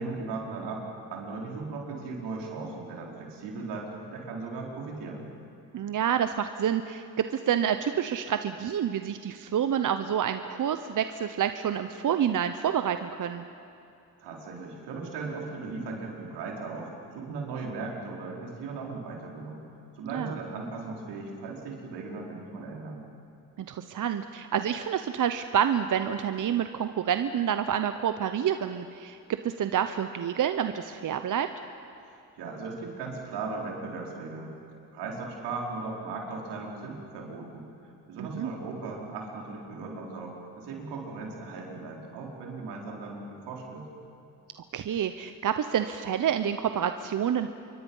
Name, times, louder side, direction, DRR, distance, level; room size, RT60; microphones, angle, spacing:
voice 1, 0.0-5.3 14.2-19.6 19.9-23.0 32.0-34.5 34.9-43.9, right 3 dB, 80° right, -1 dB, 4.6 m, -37 dB
voice 2, 5.7-13.4 20.0-20.4 23.6-29.2 29.4-31.5 38.2-38.5 44.7-47.5, right 9 dB, 50° right, 9 dB, 0.9 m, -28 dB
27.5 x 23.5 x 5.6 m, 2.7 s
supercardioid pair, 65°, 41 cm